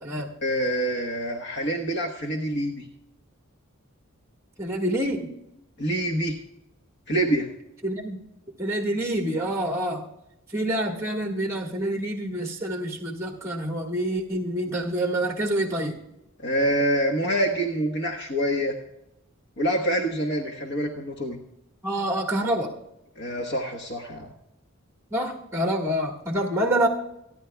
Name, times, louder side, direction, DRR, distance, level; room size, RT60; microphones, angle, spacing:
voice 1, 0.4-2.9 5.8-6.3 7.1-7.5 16.4-18.8 19.6-21.4 23.2-24.3, right 1 dB, 55° left, 2 dB, 1.2 m, -26 dB
voice 2, 4.6-5.3 7.8-8.2 8.6-10.0 10.5-16.0 21.8-22.7 25.1-26.9, right 1 dB, 15° right, 0 dB, 1.6 m, -27 dB
27.5 x 10.5 x 2.3 m, 0.86 s
head